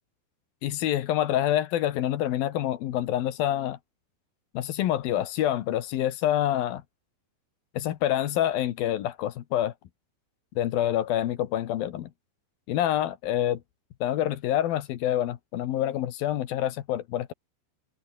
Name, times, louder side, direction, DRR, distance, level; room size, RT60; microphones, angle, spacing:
voice 1, 0.6-3.8 4.5-6.8 7.7-9.7 10.6-12.1 12.7-13.6 14.0-17.3, left 12 dB, 65° left, 2.6 m, -27 dB
omnidirectional pair, 5.2 m